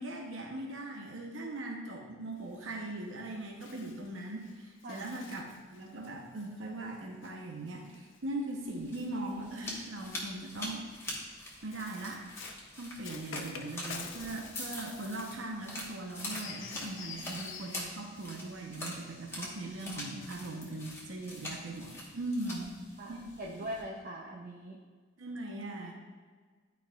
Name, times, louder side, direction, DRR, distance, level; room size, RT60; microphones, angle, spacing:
voice 1, 0.0-11.2 11.6-12.2 12.8-22.8 23.1-23.2 23.6-23.7 25.2-25.9, right 2 dB, 85° right, 0 dB, 0.9 m, -40 dB
Bird, 2.4-8.9 9.8-18.6, left 5 dB, 75° left, 0.7 m, -49 dB
sound 1, 8.6-23.8, left 1 dB, 15° left, 1.2 m, -44 dB
voice 2, 22.7-24.8, right 1 dB, 45° right, -2 dB, 0.6 m, -42 dB
11.5 x 4.7 x 2.4 m, 1.5 s
head